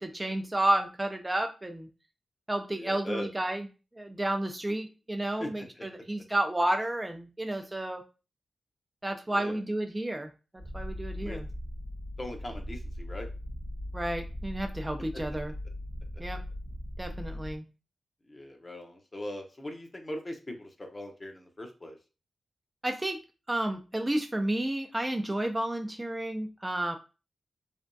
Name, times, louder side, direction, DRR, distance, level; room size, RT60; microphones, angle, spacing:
voice 1, 0.0-1.9 2.5-3.7 4.0-8.0 9.0-11.5 13.9-15.5 16.2-16.4 17.0-17.6 22.8-23.2 23.5-27.0, right 1 dB, 20° right, 5 dB, 0.4 m, -31 dB
voice 2, 2.7-3.3 5.4-5.5 5.8-5.9 7.5-7.6 9.3-9.6 11.2-11.4 12.2-13.3 17.1-17.3 18.3-22.0, left 1 dB, 35° left, 3 dB, 0.8 m, -40 dB
Purr, 10.6-17.6, left 1 dB, 65° left, 1.2 m, -39 dB
3.3 x 2.1 x 2.6 m, 0.32 s
cardioid pair, 45°, 0 cm